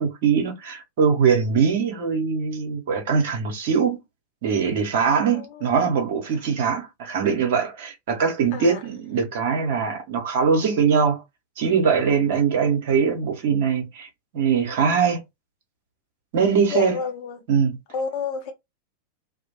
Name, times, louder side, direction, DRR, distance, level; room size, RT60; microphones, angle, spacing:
voice 1, 0.0-4.0 4.4-11.2 11.6-15.2 16.3-17.0 17.5-17.8, right 6 dB, 55° right, 0.8 m, -22 dB
voice 2, 16.7-17.4 17.9-18.5, left 5 dB, 45° left, 0.7 m, -29 dB
2.3 x 2.0 x 2.8 m
figure-of-eight pair, 90°, 0 cm